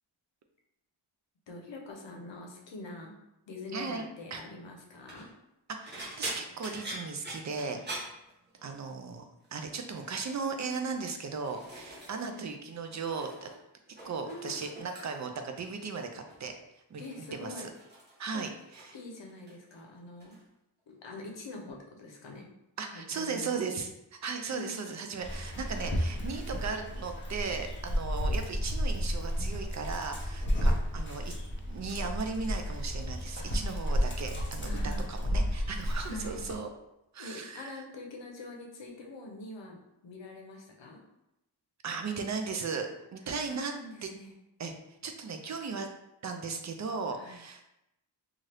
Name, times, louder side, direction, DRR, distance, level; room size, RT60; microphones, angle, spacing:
voice 1, 1.5-3.1 3.5-5.3 14.2-14.5 17.0-17.7 18.3-18.5 18.9-20.4 20.9-22.5 22.8-23.6 24.5-24.8 34.6-35.1 36.0-36.4 37.2-41.0 43.4-44.3 47.1-47.4, left 2 dB, 70° left, 1 dB, 0.7 m, -45 dB
voice 2, 3.7-4.1 4.3-4.4 5.7-7.8 8.6-9.2 9.5-13.5 14.0-16.5 16.9-17.0 17.3-17.7 18.2-19.0 22.8-23.9 24.2-31.4 31.7-36.7 37.1-37.8 41.8-43.7 44.0-44.1 44.6-44.7 45.0-45.9 46.2-47.7, right 4 dB, 40° right, 5 dB, 0.4 m, -36 dB
sound 1, 4.9-5.3 5.8-8.9 9.2-9.5 9.9-10.4 11.0-12.5 12.7-13.6 13.9-15.4 16.3-16.6 17.0-19.0 19.3-19.8 20.2-20.4 21.7-21.8, right 1 dB, 20° right, 0.7 m, -44 dB
Dog, 25.2-36.6, equal, 25° left, 0.7 m, -32 dB
2.7 x 2.4 x 3.2 m, 0.87 s
wide cardioid pair, 90°, 47 cm